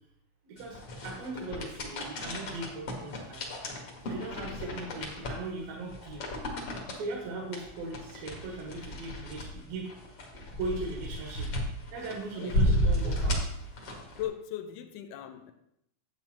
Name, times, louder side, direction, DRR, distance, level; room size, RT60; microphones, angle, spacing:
voice 1, 0.4-0.8 1.0-3.4 4.0-6.3 6.9-9.9 10.3-11.5 11.9-13.5, right 3 dB, 70° right, -2 dB, 3.1 m, -38 dB
sound 1, 0.6-14.2, equal, 50° left, 1.8 m, -33 dB
voice 2, 4.3-5.1 12.3-12.6 14.1-15.5, left 11 dB, 75° left, 8 dB, 2.0 m, -40 dB
10.5 x 8.2 x 3.0 m, 0.76 s
omnidirectional pair, 4.4 m